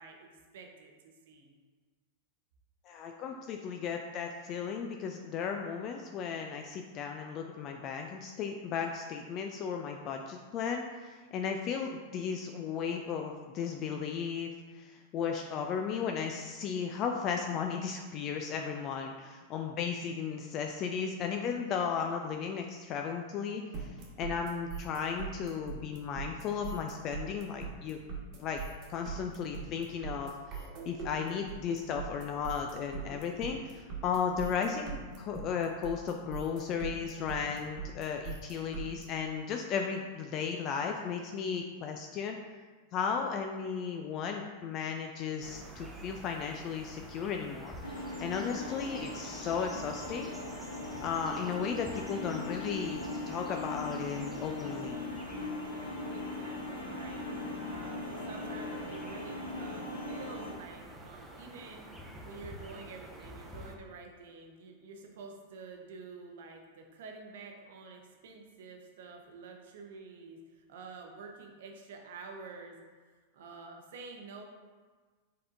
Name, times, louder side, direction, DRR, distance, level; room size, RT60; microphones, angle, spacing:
voice 1, 0.0-1.5 56.1-57.3 57.7-61.9 62.2-72.8 73.3-74.4, right 4 dB, 65° right, 2 dB, 0.7 m, -48 dB
voice 2, 2.9-28.0 28.4-28.6 28.9-42.4 42.9-50.3 51.0-55.0, left 6 dB, 40° left, 3 dB, 0.3 m, -35 dB
sound 1, 23.7-39.0, right 5 dB, 45° right, 1.2 m, -41 dB
sound 2, 45.4-63.7, right 1 dB, 10° right, 0.7 m, -48 dB
sound 3, 47.8-60.5, left 2 dB, 90° left, 0.7 m, -39 dB
5.6 x 3.6 x 2.6 m, 1.4 s
hypercardioid pair, 95°, 0 cm